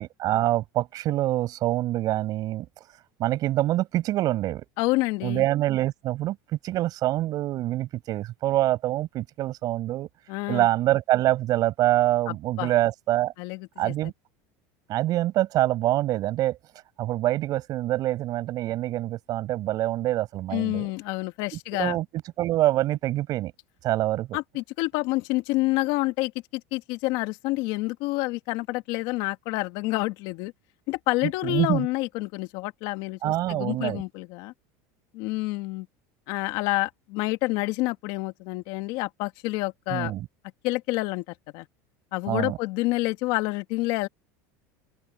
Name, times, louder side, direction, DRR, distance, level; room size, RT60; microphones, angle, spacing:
voice 1, 0.0-2.7 3.2-4.7 5.2-6.4 6.6-10.1 10.5-13.3 13.8-14.1 14.9-16.6 17.0-20.9 21.7-23.5 23.8-24.4 31.4-31.9 33.2-34.0 39.9-40.3 42.3-42.6, right 15 dB, 50° right, 7.0 m, -25 dB
voice 2, 4.8-5.5 10.3-10.7 12.3-12.7 13.4-13.9 20.5-22.0 24.3-30.5 30.9-34.5 35.1-35.9 36.3-40.1 40.6-41.2 41.5-41.7 42.1-44.1, left 21 dB, 65° left, 2.1 m, -28 dB
supercardioid pair, 130°, 9 cm